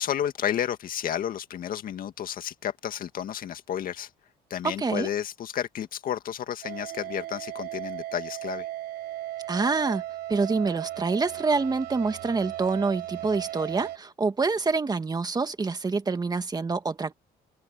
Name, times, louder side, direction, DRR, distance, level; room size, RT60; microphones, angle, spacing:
voice 1, 0.0-4.1 4.5-8.7, left 10 dB, 60° left, 2.0 m, -31 dB
voice 2, 4.6-5.1 9.5-10.0 10.3-17.1, right 4 dB, 25° right, 1.8 m, -26 dB
sound 1, 6.6-14.0, right 14 dB, 75° right, 4.8 m, -36 dB
open air
cardioid pair, 110°, 17 cm